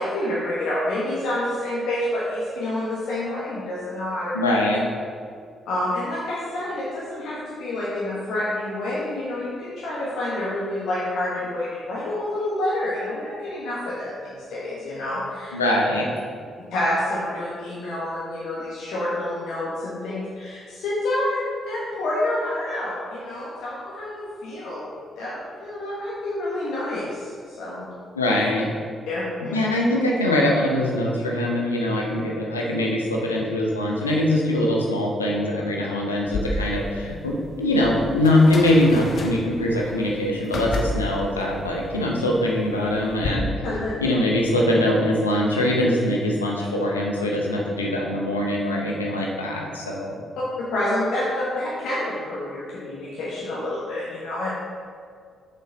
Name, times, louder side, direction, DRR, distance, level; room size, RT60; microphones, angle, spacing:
voice 1, 0.0-4.3 5.6-15.6 16.7-24.9 25.2-27.9 29.1-29.6 43.6-43.9 50.6-54.5, left 1 dB, 70° left, -8 dB, 1.3 m, -28 dB
voice 2, 4.3-4.8 15.5-16.1 28.2-28.7 29.5-43.6 44.0-50.1, left 1 dB, 90° left, -2 dB, 0.7 m, -22 dB
sound 1, 36.3-43.3, left 2 dB, 50° left, 0.9 m, -32 dB
7.0 x 5.5 x 3.9 m, 2.2 s
figure-of-eight pair, 40°, 0 cm